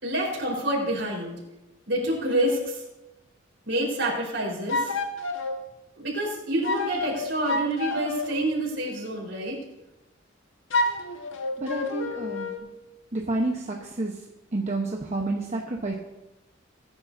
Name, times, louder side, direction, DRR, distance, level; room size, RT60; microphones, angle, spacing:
voice 1, 0.0-1.3 1.9-2.8 3.6-4.9 6.0-9.6, right 1 dB, 60° right, -3 dB, 4.4 m, -27 dB
sound 1, 4.7-5.5 6.6-8.4 10.7-12.6, left 2 dB, 75° left, 1.5 m, -28 dB
voice 2, 11.6-12.5 13.1-14.1 14.5-15.9, right 2 dB, 35° right, 0 dB, 1.0 m, -29 dB
20.5 x 10.0 x 2.7 m, 0.99 s
head